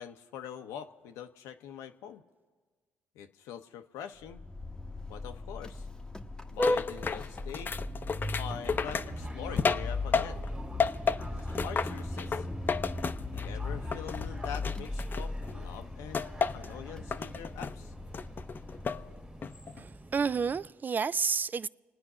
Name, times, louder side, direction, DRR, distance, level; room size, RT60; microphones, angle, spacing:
voice 1, 0.0-2.2 3.1-4.4 5.1-5.9 6.5-7.7 8.3-10.5 11.3-12.5 13.3-16.2 16.5-17.9, left 8 dB, 85° left, 0.8 m, -44 dB
Vehicle horn car horn honking, 4.2-19.6, left 2 dB, 10° left, 0.9 m, -37 dB
sound 1, 6.6-10.5 10.8-13.6 13.9-15.5 16.1-16.7 17.1-17.7 18.1-19.0 19.4-19.8, left 5 dB, 40° left, 0.6 m, -32 dB
sound 2, 8.7-20.7, right 2 dB, 20° right, 1.7 m, -47 dB
voice 2, 19.8-21.7, right 5 dB, 35° right, 0.4 m, -30 dB
28.5 x 9.6 x 4.9 m
supercardioid pair, 65°, 5 cm